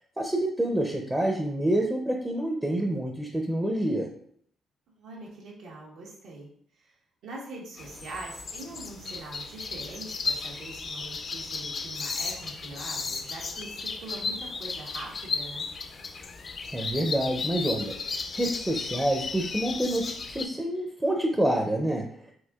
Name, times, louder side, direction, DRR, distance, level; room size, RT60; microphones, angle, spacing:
voice 1, 0.2-4.1 16.7-22.0, right 1 dB, 10° right, 0 dB, 0.5 m, -27 dB
voice 2, 5.0-6.5 6.8-6.9 7.2-15.7, right 2 dB, 80° right, -3 dB, 1.2 m, -43 dB
sound 1, 7.8-20.5, left 4 dB, 45° left, 0.4 m, -35 dB
4.4 x 2.7 x 2.3 m, 0.63 s
cardioid pair, 90°, 0 cm